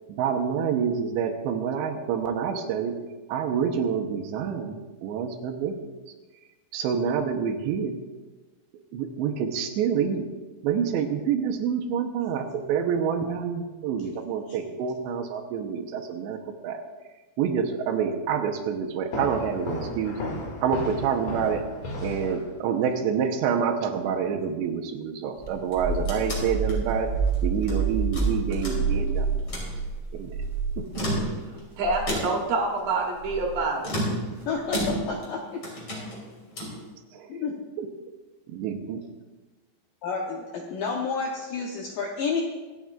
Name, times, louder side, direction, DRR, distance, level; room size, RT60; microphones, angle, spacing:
voice 1, 0.1-3.0 3.3-5.8 6.7-8.0 8.9-10.3 10.6-16.4 16.6-16.8 17.4-20.2 20.6-21.6 22.0-27.1 27.4-29.3 30.1-30.4 30.8-30.9 37.1-37.3 37.8-37.9 38.5-39.0, right 7 dB, 85° right, 3 dB, 3.1 m, -27 dB
sound 1, 19.1-22.8, left 2 dB, 60° left, 3.7 m, -34 dB
sound 2, 25.4-31.3 31.7-32.1 33.2-33.5 34.7-35.1, right 4 dB, 35° right, 0.9 m, -28 dB
sound 3, 25.6-27.8 28.1-29.1 29.4-29.7 30.8-31.6 32.1-32.6 33.8-35.3 35.6-36.8, equal, 35° left, 3.3 m, -32 dB
voice 2, 31.8-33.9, right 3 dB, 65° right, 1 dB, 2.7 m, -26 dB
voice 3, 34.5-35.6 37.3-37.6 40.0-42.4, left 5 dB, 75° left, 0 dB, 2.0 m, -30 dB
25.0 x 9.3 x 2.4 m, 1.2 s
omnidirectional pair, 5.1 m